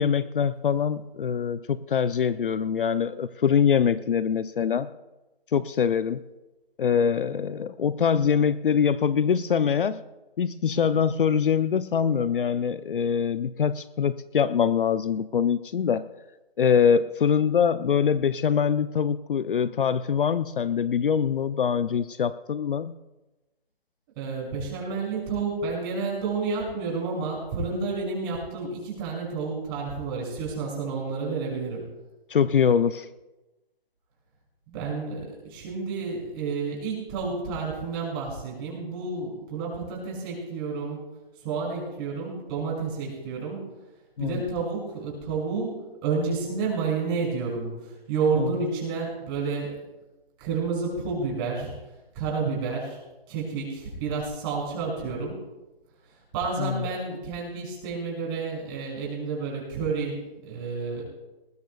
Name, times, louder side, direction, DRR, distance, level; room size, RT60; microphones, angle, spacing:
voice 1, 0.0-4.9 5.5-6.2 6.8-10.0 10.4-16.1 16.6-22.9 32.3-33.1 44.2-44.4 48.4-48.5 56.6-56.8, left 7 dB, 60° left, 14 dB, 0.6 m, -24 dB
voice 2, 24.2-31.9 34.7-41.0 41.4-43.7 44.2-49.8 50.4-51.7 52.1-53.0 53.3-55.4 56.3-61.0, right 4 dB, 25° right, -3 dB, 6.2 m, -30 dB
20.0 x 18.5 x 2.3 m, 1.1 s
hypercardioid pair, 155°, 30 cm